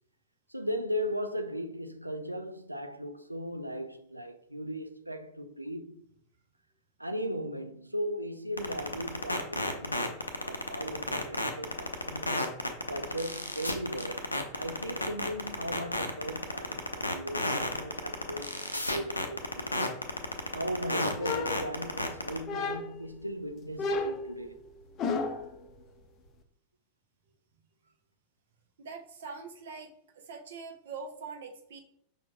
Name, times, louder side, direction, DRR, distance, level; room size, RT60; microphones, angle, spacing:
voice 1, 0.5-6.0 7.0-12.3 12.9-19.7 20.5-24.6, equal, 85° right, 0.4 m, -37 dB
sound 1, 8.6-22.4, left 1 dB, 85° left, 0.6 m, -31 dB
sound 2, 21.2-22.1 22.5-23.1 23.8-25.5, left 3 dB, 30° left, 0.5 m, -33 dB
voice 2, 28.8-31.8, right 5 dB, 60° right, 0.8 m, -43 dB
5.3 x 3.7 x 2.3 m
figure-of-eight pair, 90°, 0 cm